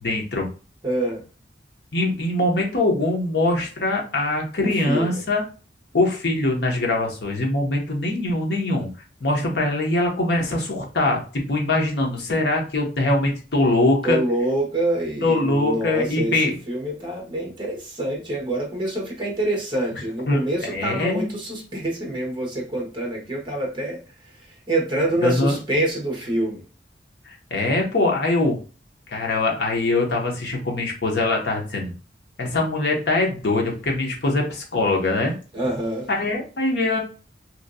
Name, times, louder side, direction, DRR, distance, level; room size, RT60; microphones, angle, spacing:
voice 1, 0.0-0.5 1.9-5.4 5.9-8.9 9.2-14.2 15.2-16.5 20.3-21.3 25.2-25.6 27.3-28.6 29.1-31.9 32.4-35.3 36.1-37.0, left 2 dB, 70° left, 0 dB, 0.8 m, -22 dB
voice 2, 0.8-1.2 4.6-5.2 14.0-26.6 35.5-36.1, right 1 dB, 25° right, -1 dB, 1.0 m, -26 dB
2.9 x 2.6 x 2.5 m, 0.35 s
head